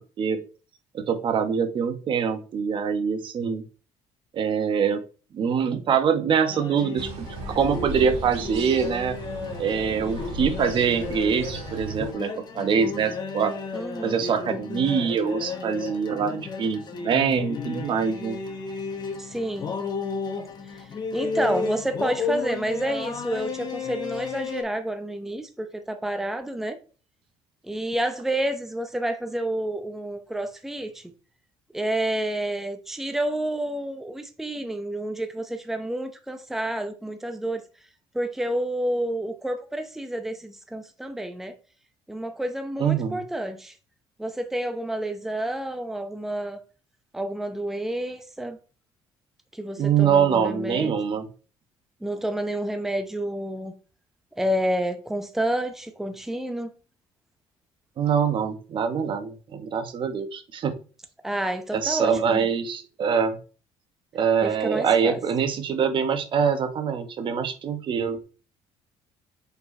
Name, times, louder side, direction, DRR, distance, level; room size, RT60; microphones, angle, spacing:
voice 1, 0.9-3.6 4.3-5.0 5.3-9.2 9.6-13.5 14.0-18.4 42.8-43.2 49.8-51.3 58.0-60.7 61.7-63.4 64.1-68.2, right 7 dB, 45° right, 1.0 m, -24 dB
sound 1, 6.5-24.6, left 5 dB, 40° left, 1.2 m, -33 dB
sound 2, 7.0-12.1, right 2 dB, 65° right, 1.8 m, -36 dB
voice 2, 13.7-14.3 19.2-19.7 20.7-26.8 27.6-31.0 31.7-37.6 38.1-41.5 42.1-43.8 44.2-46.6 47.1-48.6 49.5-50.9 52.0-53.7 54.4-56.7 61.2-62.5 64.4-65.2, right 1 dB, 5° right, 0.7 m, -29 dB
5.4 x 4.5 x 4.2 m
cardioid pair, 115°, 11 cm